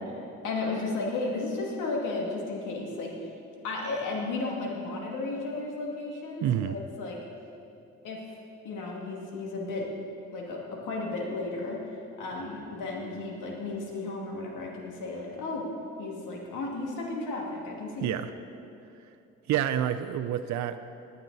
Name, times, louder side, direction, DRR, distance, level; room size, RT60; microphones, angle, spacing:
voice 1, 0.4-3.1 3.6-7.2 8.0-8.2 8.6-9.9 10.3-11.8 12.2-15.7 16.0-18.2, left 3 dB, 90° left, -1 dB, 2.4 m, -34 dB
voice 2, 6.4-6.8 18.0-18.3 19.5-20.8, right 10 dB, 70° right, 8 dB, 0.6 m, -28 dB
19.5 x 9.6 x 4.1 m, 2.7 s
cardioid pair, 90°, 30 cm